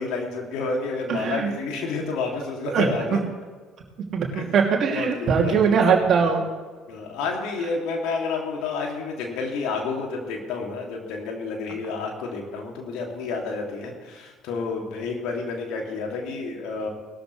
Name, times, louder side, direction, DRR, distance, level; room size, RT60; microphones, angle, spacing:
voice 1, 0.0-3.2 4.4-4.5 4.9-5.9 6.9-16.9, left 4 dB, 70° left, 1 dB, 2.8 m, -30 dB
voice 2, 1.1-1.5 2.7-2.9 3.1-3.2 4.1-6.5, right 6 dB, 55° right, 0 dB, 2.8 m, -21 dB
19.5 x 13.0 x 3.4 m, 1.4 s
hypercardioid pair, 60°, 0 cm